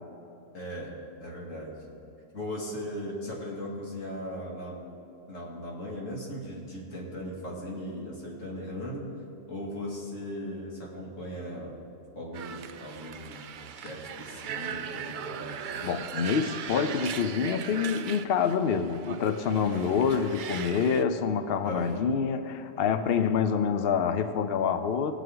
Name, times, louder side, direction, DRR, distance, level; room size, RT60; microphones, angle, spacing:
voice 1, 0.5-0.9 1.2-1.8 2.3-4.8 5.3-9.1 9.5-11.7 12.1-13.5 13.7-15.9 19.6-20.0 21.6-22.0 23.0-23.2, equal, 75° left, -3 dB, 2.5 m, -38 dB
sound 1, 12.3-21.0, right 8 dB, 65° right, 0.5 m, -39 dB
voice 2, 15.8-25.1, left 6 dB, 60° left, 9 dB, 0.7 m, -27 dB
19.0 x 8.2 x 3.8 m, 2.9 s
omnidirectional pair, 1.3 m